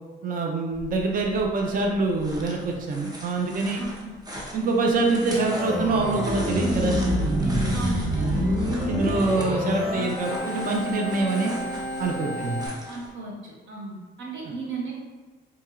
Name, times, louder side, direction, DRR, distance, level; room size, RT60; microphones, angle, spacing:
voice 1, 0.2-3.8 4.5-7.0 7.4-7.8 8.9-11.5 12.0-12.6, right 3 dB, 45° right, 1 dB, 0.5 m, -25 dB
sound 1, 0.7-13.1, equal, 20° right, 0.8 m, -41 dB
Organ, 5.3-12.7, equal, ahead, 1.3 m, -27 dB
voice 2, 7.7-9.0 12.9-14.9, right 3 dB, 70° right, -4 dB, 1.2 m, -35 dB
4.3 x 2.8 x 2.4 m, 1.3 s
cardioid pair, 90°, 20 cm